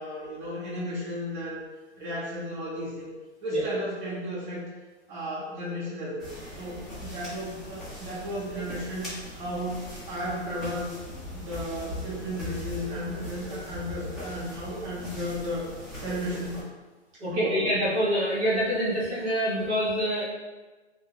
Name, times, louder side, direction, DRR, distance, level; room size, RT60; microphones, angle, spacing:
voice 1, 0.0-1.6 2.0-3.1 3.4-4.6 5.1-6.3 6.6-9.8 10.1-10.9 11.3-15.7 15.9-16.7 17.2-17.7, equal, 45° right, -8 dB, 1.3 m, -34 dB
sound 1, 6.2-16.6, left 1 dB, ahead, 0.6 m, -40 dB
voice 2, 17.2-20.3, equal, 65° right, -7 dB, 1.3 m, -26 dB
2.6 x 2.3 x 3.8 m, 1.2 s
hypercardioid pair, 145°, 36 cm